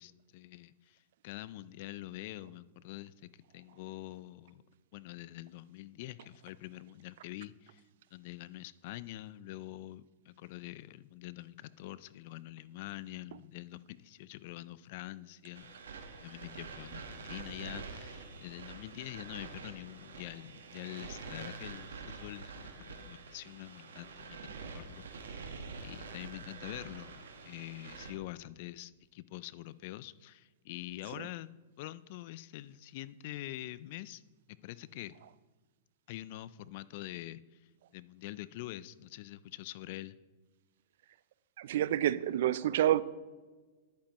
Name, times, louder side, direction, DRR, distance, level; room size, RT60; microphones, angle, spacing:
voice 1, 0.0-4.6 4.9-7.8 8.1-15.7 16.2-25.1 25.8-34.2 34.5-35.1 36.1-40.2, left 16 dB, 55° left, 18 dB, 0.4 m, -45 dB
sound 1, 15.5-28.1, right 4 dB, 85° right, 1.3 m, -46 dB
voice 2, 41.6-43.0, right 12 dB, 65° right, 17 dB, 0.4 m, -28 dB
10.5 x 8.9 x 3.0 m, 1.3 s
hypercardioid pair, 120°, 0 cm